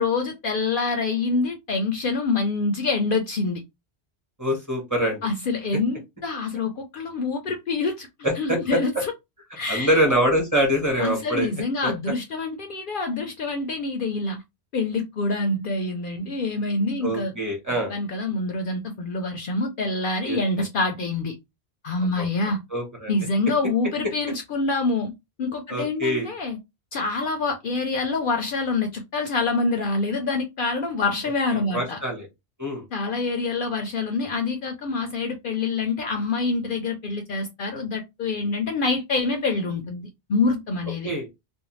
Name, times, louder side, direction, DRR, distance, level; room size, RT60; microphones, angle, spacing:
voice 1, 0.0-3.6 5.2-8.1 8.4-9.1 9.6-9.9 11.0-14.4 14.7-17.4 17.9-21.3 21.8-22.6 23.1-25.1 25.4-26.6 26.9-32.0 32.9-41.1, left 3 dB, 60° left, 0.6 m, -26 dB
voice 2, 4.4-5.2 8.2-8.8 9.7-11.5 11.8-11.9 17.0-17.9 20.3-20.4 22.2-22.3 22.7-23.1 25.7-26.3 31.7-32.3 32.6-32.8 41.0-41.3, equal, 20° right, 1.1 m, -24 dB
2.5 x 2.1 x 3.0 m
omnidirectional pair, 1.1 m